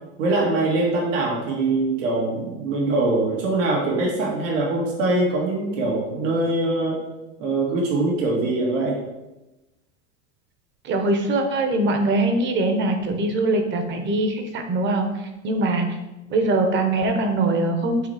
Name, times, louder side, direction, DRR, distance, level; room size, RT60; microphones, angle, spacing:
voice 1, 0.2-7.0 7.4-9.0, right 2 dB, 80° right, -3 dB, 2.3 m, -23 dB
voice 2, 10.8-15.1 15.4-15.9 16.3-18.1, right 2 dB, 30° right, 5 dB, 1.1 m, -22 dB
8.1 x 3.2 x 4.9 m, 1.0 s
supercardioid pair, 140°, 37 cm